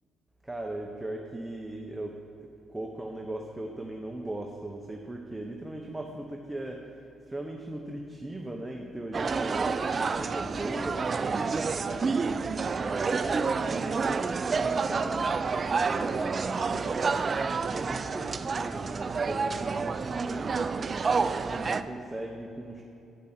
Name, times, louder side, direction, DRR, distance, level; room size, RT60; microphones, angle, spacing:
voice 1, 0.4-6.8 7.3-12.0 12.6-15.3 15.8-16.9 17.7-20.5 21.3-22.8, right 1 dB, 10° right, 1 dB, 0.7 m, -39 dB
sound 1, 9.1-21.8, right 4 dB, 40° right, 0.3 m, -29 dB
8.5 x 8.4 x 4.3 m, 2.6 s
cardioid pair, 90°, 0 cm